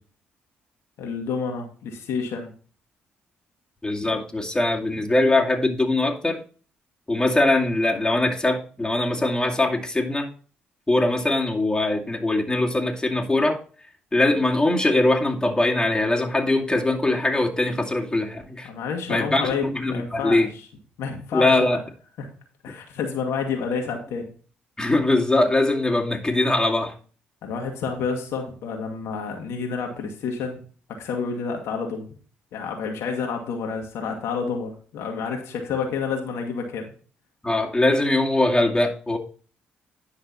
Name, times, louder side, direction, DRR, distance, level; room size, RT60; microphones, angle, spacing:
voice 1, 1.0-2.5 18.6-20.6 21.0-21.8 22.2-22.3 22.6-24.3 27.4-30.6 31.0-32.1 32.5-36.9, left 5 dB, 65° left, 2 dB, 1.8 m, -29 dB
voice 2, 3.8-6.4 7.1-10.3 10.9-13.6 14.1-18.7 19.1-20.5 21.3-21.8 24.8-26.9 37.4-39.2, left 2 dB, 15° left, 0 dB, 2.4 m, -22 dB
10.5 x 5.4 x 4.2 m, 0.40 s
hypercardioid pair, 50°, 5 cm